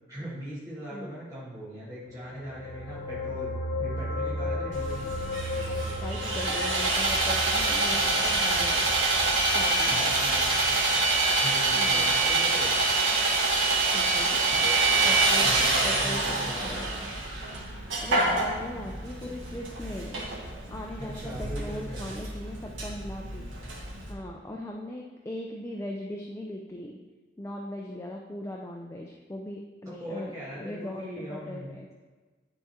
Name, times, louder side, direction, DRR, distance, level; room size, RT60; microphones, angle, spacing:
voice 1, 0.1-5.1 9.9-10.6 11.4-12.8 14.5-15.2 15.4-17.1 21.0-22.1 30.0-31.7, equal, 20° right, -9 dB, 1.6 m, -40 dB
sound 1, 2.2-13.0 13.3-13.5, left 1 dB, 45° left, 0.9 m, -36 dB
Sawing, 4.7-24.1, right 3 dB, 80° right, 1.4 m, -26 dB
voice 2, 5.7-8.9 9.5-10.2 11.8-12.1 13.9-14.7 15.0-15.5 15.8-17.1 18.0-20.2 20.7-23.5 24.1-27.0 27.4-31.9, left 1 dB, 15° left, 0 dB, 0.5 m, -39 dB
9.8 x 3.6 x 4.3 m, 1.3 s
head